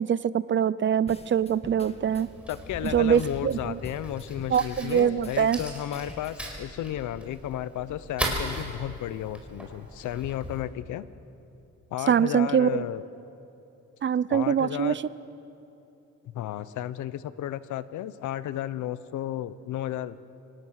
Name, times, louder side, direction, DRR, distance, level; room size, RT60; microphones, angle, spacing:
voice 1, 0.0-2.3 2.8-3.8 4.5-5.6 12.1-12.9 14.0-15.0, right 8 dB, 40° right, 18 dB, 0.6 m, -24 dB
sound 1, 1.1-6.6, left 3 dB, 20° left, 1.4 m, -45 dB
Fire, 1.8-10.6, right 1 dB, 5° right, 4.9 m, -38 dB
voice 2, 2.5-11.1 11.9-13.0 14.3-15.0 16.3-20.2, left 12 dB, 75° left, 16 dB, 0.8 m, -33 dB
25.0 x 17.5 x 6.5 m, 2.9 s
cardioid pair, 90°, 30 cm